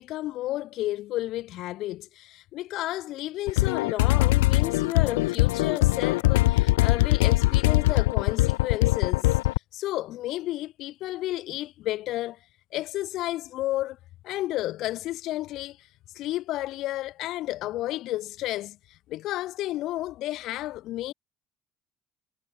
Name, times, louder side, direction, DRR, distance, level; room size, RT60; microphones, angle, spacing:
voice 1, 0.0-9.4 9.7-12.4 12.7-14.0 14.2-15.9 16.1-21.1, left 15 dB, 65° left, 4.0 m, -32 dB
sound 1, 3.5-9.6, left 19 dB, 80° left, 0.8 m, -22 dB
hypercardioid pair, 55°, 0 cm